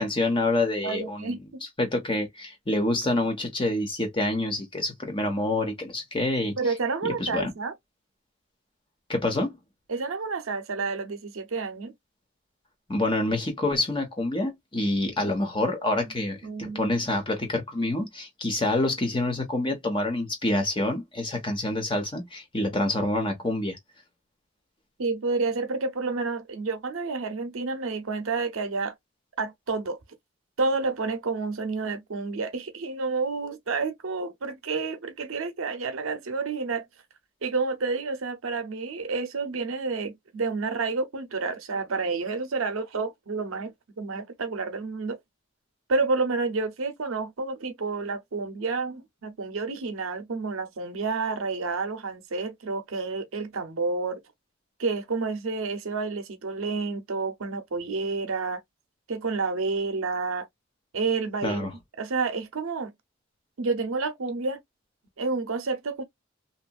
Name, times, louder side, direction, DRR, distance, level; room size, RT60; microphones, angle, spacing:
voice 1, 0.0-1.4 1.8-6.5 7.0-7.5 9.1-9.6 12.9-23.8 61.4-61.7, left 2 dB, 25° left, 1.0 m, -27 dB
voice 2, 0.8-1.6 6.6-7.7 9.9-11.9 16.4-16.8 25.0-28.9 29.4-30.0 30.6-36.8 37.4-45.2 45.9-54.2 54.8-58.6 59.1-60.5 60.9-61.7 62.0-62.9 63.6-64.6 65.2-66.0, right 4 dB, 80° right, 0.7 m, -29 dB
2.9 x 2.5 x 2.3 m
head